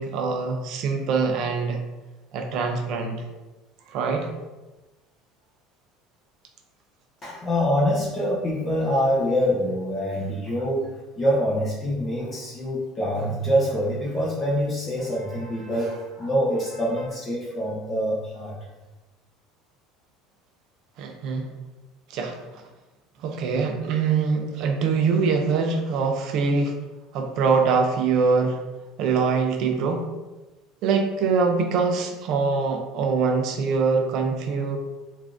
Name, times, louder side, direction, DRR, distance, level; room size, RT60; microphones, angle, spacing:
voice 1, 0.0-1.8 2.3-3.2 3.9-4.3 21.0-21.5 22.1-22.6 23.2-26.8 27.1-28.6 29.0-30.0 30.8-34.8, right 5 dB, 50° right, 4 dB, 0.4 m, -23 dB
voice 2, 7.2-18.6, equal, 20° left, -6 dB, 0.6 m, -25 dB
3.4 x 2.4 x 2.4 m, 1.1 s
cardioid pair, 170°, 0 cm